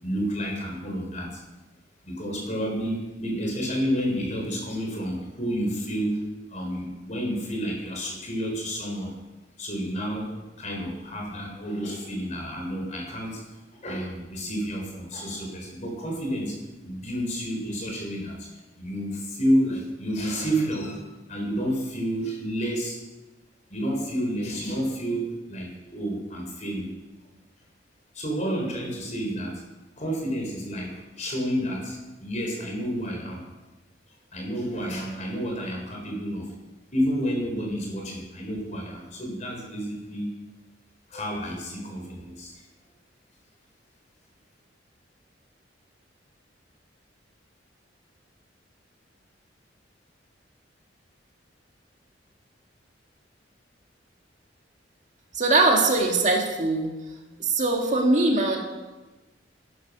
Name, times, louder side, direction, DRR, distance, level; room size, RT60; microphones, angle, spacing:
voice 1, 0.0-1.4 2.0-9.1 9.6-10.3 10.6-13.4 13.7-16.6 16.8-18.5 18.8-23.0 23.7-26.9 28.1-29.6 30.0-33.4 34.3-36.5 36.9-40.3 41.1-42.6, equal, 40° left, 0 dB, 4.0 m, -30 dB
voice 2, 55.3-56.9 57.4-58.6, right 2 dB, 40° right, 1 dB, 2.0 m, -21 dB
13.0 x 11.0 x 6.2 m, 1.1 s
head